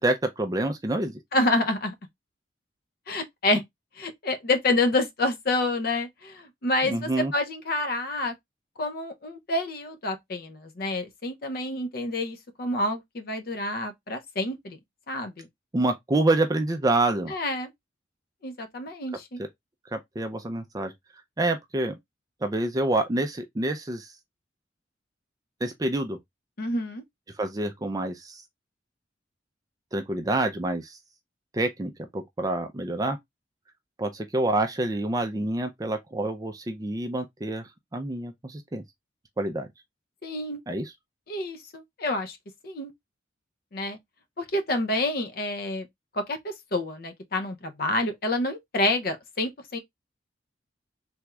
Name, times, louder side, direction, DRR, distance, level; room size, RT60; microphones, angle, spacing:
voice 1, 0.0-1.2 6.8-7.3 15.7-17.4 19.4-19.5 19.9-20.9 21.4-22.0 22.4-24.1 25.6-26.2 27.4-28.4 29.9-31.0 31.5-33.2 34.0-38.8 39.4-39.7 40.7-40.9, right 2 dB, 20° right, 0.4 m, -27 dB
voice 2, 1.3-1.9 3.1-3.6 4.0-8.3 8.8-14.8 15.1-15.5 17.3-17.7 18.4-19.4 26.6-27.0 40.2-40.6 41.3-42.4 42.6-42.9 43.7-44.0 44.4-45.9 46.1-49.8, left 2 dB, 50° left, 0.6 m, -28 dB
3.4 x 2.3 x 2.9 m
head